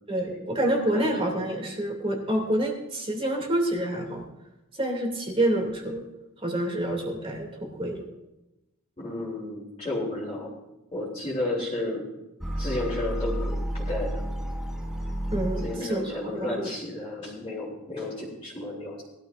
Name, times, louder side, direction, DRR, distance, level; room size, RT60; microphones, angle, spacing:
voice 1, 0.1-4.2 4.7-6.0 6.4-8.0 15.3-16.7, right 1 dB, 25° right, 1 dB, 2.7 m, -28 dB
voice 2, 9.0-10.5 10.9-12.0 12.6-14.2 15.6-19.0, left 2 dB, 25° left, -7 dB, 3.5 m, -32 dB
sound 1, 12.4-16.2, equal, ahead, 1.1 m, -31 dB
20.0 x 13.0 x 2.6 m, 0.96 s
head